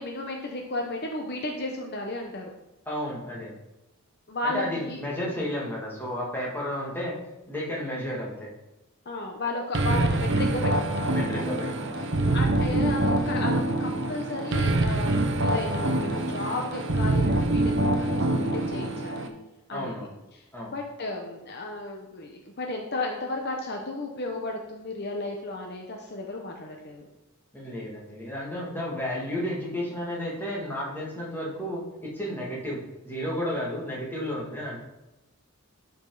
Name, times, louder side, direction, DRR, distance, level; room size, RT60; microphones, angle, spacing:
voice 1, 0.0-2.5 4.3-5.0 9.1-11.1 12.3-19.3 19.7-20.0 20.3-27.1, left 2 dB, 45° left, 1 dB, 0.9 m, -34 dB
voice 2, 2.9-3.5 4.4-7.1 7.5-8.5 11.1-12.5 19.7-20.2 20.5-20.7 27.5-34.8, left 1 dB, 10° left, -4 dB, 2.1 m, -32 dB
sound 1, 9.7-19.3, right 2 dB, 55° right, 0.8 m, -25 dB
12.0 x 5.3 x 4.0 m, 0.98 s
head